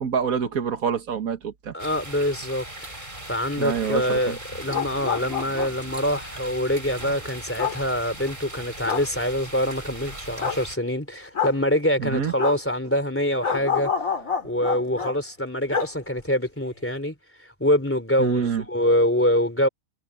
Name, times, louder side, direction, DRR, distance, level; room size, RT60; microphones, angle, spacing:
voice 1, 0.0-1.7 3.6-4.4 12.0-12.3 18.2-18.6, right 7 dB, 80° right, 2.0 m, -26 dB
voice 2, 1.7-14.1 14.4-17.1 17.6-19.7, equal, 10° left, 3.5 m, -25 dB
sound 1, 1.8-10.8, right 1 dB, 35° right, 5.2 m, -39 dB
sound 2, 4.5-5.9 7.6-7.8 8.9-9.1 10.4-10.6 11.3-11.6 12.4-12.6 13.4-15.1 15.7-15.9 16.2-16.3, left 6 dB, 70° left, 3.9 m, -28 dB
omnidirectional pair, 1.4 m